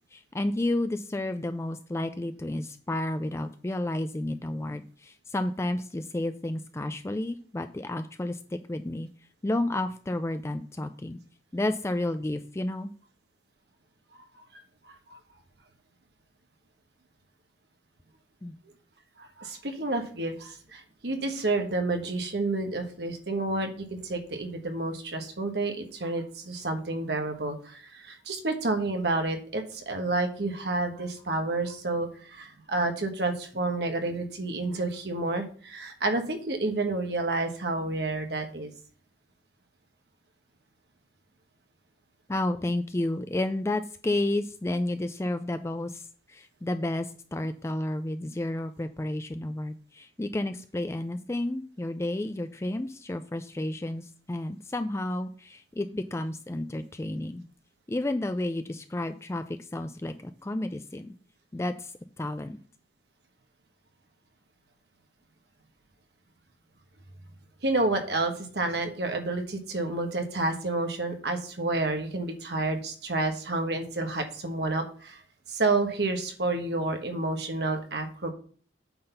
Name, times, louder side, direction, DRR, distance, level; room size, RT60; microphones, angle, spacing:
voice 1, 0.1-9.1 9.4-11.2 11.5-12.9 18.4-18.5 42.3-57.4 57.9-61.1 61.5-62.6, left 1 dB, 15° left, 9 dB, 0.4 m, -31 dB
voice 2, 14.8-15.2 19.2-38.7 67.6-75.2 75.5-78.3, right 2 dB, 65° right, 5 dB, 1.3 m, -30 dB
8.6 x 4.0 x 5.6 m, 0.44 s
head